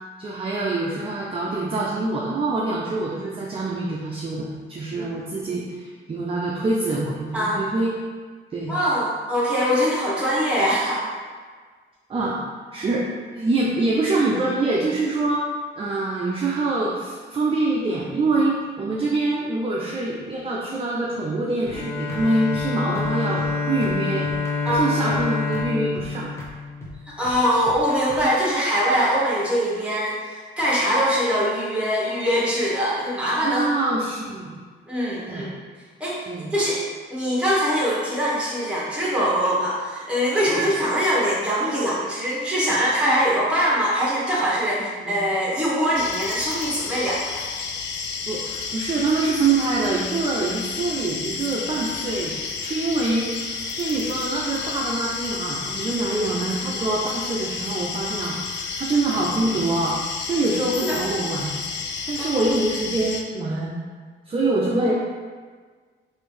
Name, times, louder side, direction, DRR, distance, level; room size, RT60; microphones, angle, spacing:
voice 1, 0.2-7.9 8.5-8.8 12.1-12.4 12.7-13.0 13.3-15.4 15.8-24.3 24.7-26.3 33.4-34.6 35.3-35.5 36.3-36.5 40.5-40.6 44.8-45.2 48.3-52.3 52.6-53.3 53.8-60.0 60.2-61.6 62.1-63.8 64.3-64.9, right 2 dB, 30° right, -4 dB, 0.5 m, -25 dB
voice 2, 8.7-11.0 24.6-24.8 25.0-25.2 27.2-33.6 34.9-35.5 36.0-36.2 36.5-36.8 37.1-47.2 60.8-61.0 62.3-62.5 64.9-65.0, equal, 5° right, -7 dB, 1.2 m, -22 dB
Bowed string instrument, 21.7-27.3, left 4 dB, 90° left, 0.8 m, -27 dB
sound 1, 21.7-21.8 22.1-22.2 22.5-22.7 22.9-23.1 23.4-23.5 23.8-24.0 24.2-24.8 25.1-25.2 25.5-25.7 25.9-26.1 26.4-26.5 26.8-26.9 27.2-27.4 27.7-28.2, right 1 dB, 15° left, 0.8 m, -40 dB
sound 2, 46.0-63.2, left 5 dB, 65° left, 0.4 m, -31 dB
3.2 x 2.6 x 3.2 m, 1.5 s
cardioid pair, 90°, 20 cm